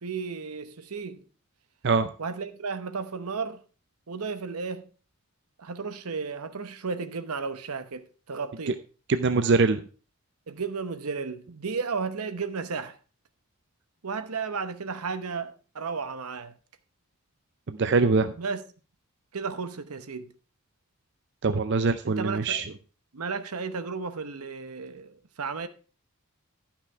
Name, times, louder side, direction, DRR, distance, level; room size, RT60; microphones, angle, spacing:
voice 1, 0.0-1.2 2.2-3.6 4.1-4.8 5.6-8.8 10.5-13.0 14.0-16.5 18.4-18.6 19.3-20.3 22.0-22.6 23.1-25.7, right 5 dB, 85° right, 0.9 m, -33 dB
voice 2, 9.1-9.8 17.7-18.3 21.4-22.6, right 4 dB, 50° right, 0.5 m, -23 dB
12.0 x 5.9 x 4.5 m
head